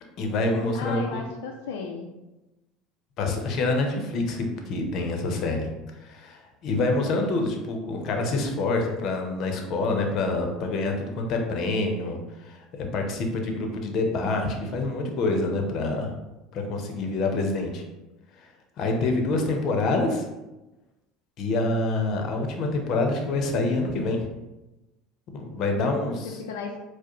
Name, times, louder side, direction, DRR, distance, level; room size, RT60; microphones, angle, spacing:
voice 1, 0.2-1.2 3.2-5.7 6.0-16.1 16.5-17.8 18.8-20.2 21.4-24.2 25.3-26.3, left 2 dB, 55° left, 3 dB, 0.7 m, -26 dB
voice 2, 0.7-2.1 7.2-7.5 26.1-26.8, left 5 dB, 90° left, 1 dB, 0.4 m, -35 dB
4.6 x 2.1 x 3.0 m, 1.0 s
supercardioid pair, 105°, 0 cm